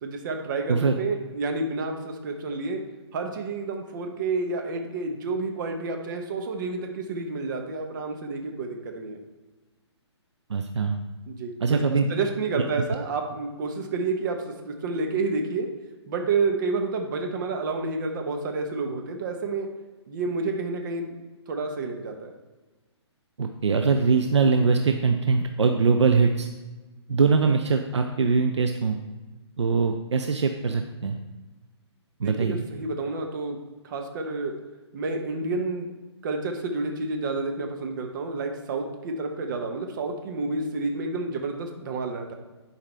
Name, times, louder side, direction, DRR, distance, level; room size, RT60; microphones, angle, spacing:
voice 1, 0.0-2.8 3.1-9.2 11.3-15.7 16.1-19.7 20.1-21.2 21.5-22.3 32.2-33.6 33.8-34.6 34.9-35.9 36.2-42.3, right 3 dB, 45° right, 3 dB, 1.2 m, -29 dB
voice 2, 0.7-1.0 10.5-11.0 11.6-12.1 23.4-26.5 27.1-29.0 29.6-31.2 32.2-32.6, right 5 dB, 75° right, 5 dB, 0.6 m, -22 dB
10.5 x 4.8 x 3.4 m, 1.2 s
figure-of-eight pair, 135°, 15 cm